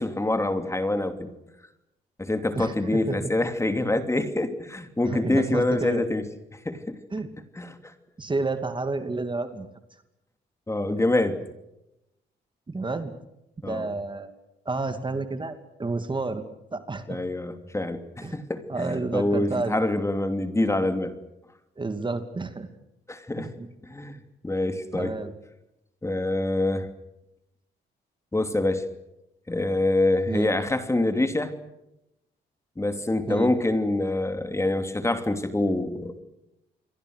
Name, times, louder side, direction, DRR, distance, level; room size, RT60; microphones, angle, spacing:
voice 1, 0.0-1.3 2.2-6.2 6.6-7.0 7.6-7.9 10.7-11.4 13.6-13.9 17.1-21.1 23.1-23.5 23.8-24.2 24.4-25.1 26.0-26.9 28.3-28.8 29.5-31.5 32.8-36.1, left 2 dB, 15° left, 8 dB, 2.9 m, -26 dB
voice 2, 2.5-3.3 5.0-6.0 7.1-7.3 8.2-9.7 12.7-13.1 13.7-14.3 14.7-15.5 15.8-16.4 16.7-17.2 18.2-18.4 18.7-19.8 21.8-22.7 23.4-23.7 24.9-25.3 30.3-30.5 33.3-33.5, right 3 dB, 25° right, 9 dB, 2.5 m, -30 dB
28.5 x 22.5 x 6.5 m, 0.89 s
cardioid pair, 90°, 20 cm